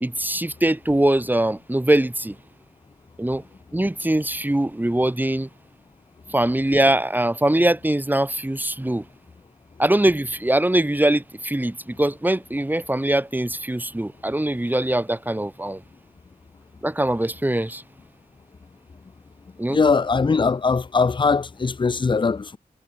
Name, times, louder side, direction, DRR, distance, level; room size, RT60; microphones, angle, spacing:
voice 1, 0.0-2.4 3.2-3.4 3.7-5.5 6.3-9.0 9.8-15.8 16.8-17.8 19.6-19.8, right 1 dB, 10° right, 0.8 m, -22 dB
voice 2, 19.7-22.6, left 4 dB, 30° left, 0.4 m, -21 dB
cardioid pair, 55°, 16 cm